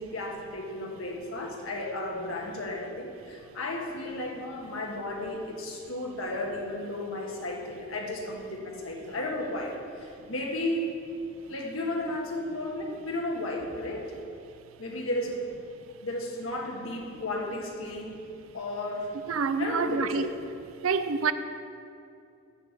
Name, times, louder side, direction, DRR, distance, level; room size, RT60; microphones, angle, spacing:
voice 1, 0.0-11.0 11.5-14.0 14.8-15.4 16.0-18.1 18.5-19.1 19.6-20.3, left 1 dB, 75° left, 0 dB, 1.4 m, -34 dB
voice 2, 19.3-20.3 20.8-21.3, right 5 dB, 80° right, 11 dB, 0.5 m, -27 dB
7.1 x 6.7 x 7.1 m, 2.6 s
head